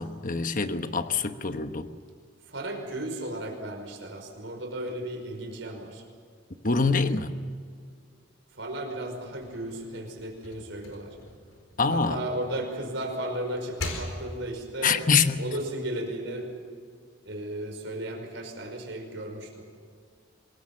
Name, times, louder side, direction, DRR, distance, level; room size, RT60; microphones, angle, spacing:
voice 1, 0.0-1.9 6.6-7.4 11.8-12.2 14.8-15.4, left 4 dB, 45° left, 8 dB, 1.1 m, -25 dB
voice 2, 2.5-6.0 8.5-11.2 11.9-15.0 15.4-16.6 17.2-19.7, right 1 dB, 70° right, 2 dB, 5.6 m, -35 dB
sound 1, 9.3-12.4 12.9-14.7, left 2 dB, 90° left, 4.6 m, -41 dB
26.0 x 21.5 x 7.4 m, 2.1 s
head